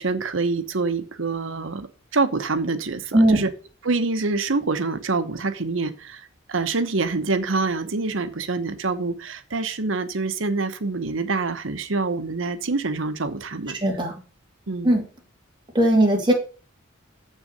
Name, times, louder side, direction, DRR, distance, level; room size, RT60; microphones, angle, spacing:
voice 1, 0.0-3.5 3.8-13.8 14.7-14.9, right 3 dB, 70° right, 11 dB, 1.0 m, -26 dB
voice 2, 13.7-14.1 14.8-15.0 15.7-16.3, right 1 dB, 20° right, 0 dB, 2.6 m, -18 dB
7.5 x 6.7 x 6.7 m, 0.37 s
head